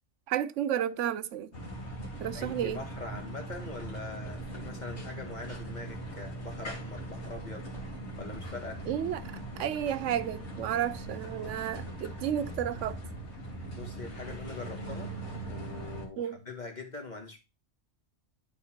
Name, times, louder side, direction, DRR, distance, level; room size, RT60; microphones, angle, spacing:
voice 1, 0.3-1.5 2.2-2.8 8.9-13.0 16.2-16.4, right 10 dB, 85° right, 0.9 m, -32 dB
sound 1, 1.5-16.0, right 1 dB, 65° left, 2.3 m, -40 dB
voice 2, 2.3-7.7 8.2-8.8 13.8-15.1 15.5-17.4, left 3 dB, 40° left, 1.7 m, -43 dB
11.0 x 4.0 x 4.4 m
omnidirectional pair, 1.2 m